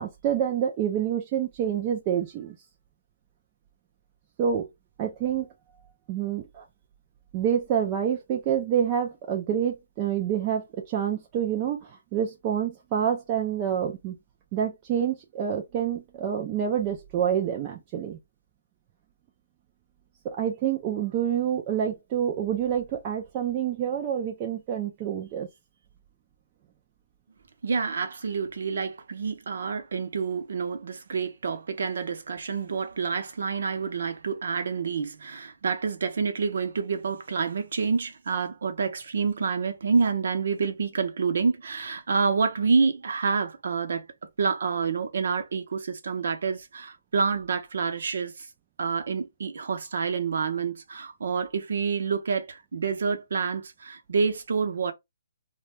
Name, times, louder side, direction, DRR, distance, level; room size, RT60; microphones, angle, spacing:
voice 1, 0.0-2.6 4.4-4.7 5.0-5.5 6.1-6.6 7.3-14.2 14.5-18.2 20.2-25.5, right 9 dB, 15° right, 0.3 m, -27 dB
voice 2, 27.6-44.1 44.4-48.5 48.8-54.9, right 5 dB, 55° right, 0.6 m, -28 dB
2.5 x 2.2 x 3.1 m
hypercardioid pair, 180°, 0 cm